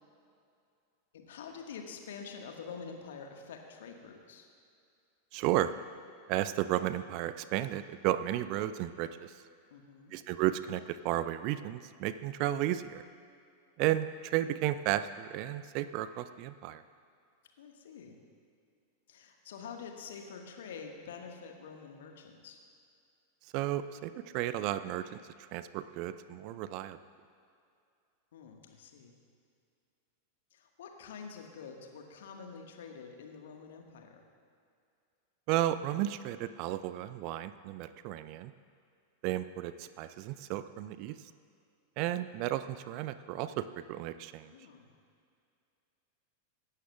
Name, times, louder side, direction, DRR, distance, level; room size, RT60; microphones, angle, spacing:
voice 1, 1.1-4.5 9.7-10.1 17.6-18.2 19.1-22.6 28.3-29.1 30.5-34.2 44.4-44.9, left 6 dB, 60° left, 3 dB, 1.6 m, -47 dB
voice 2, 5.3-5.7 6.3-9.3 10.1-13.0 13.8-16.8 23.5-27.0 35.5-38.5 39.2-41.2 42.0-44.5, right 13 dB, 45° right, 13 dB, 0.4 m, -33 dB
26.0 x 12.0 x 2.4 m, 2.4 s
figure-of-eight pair, 90°, 0 cm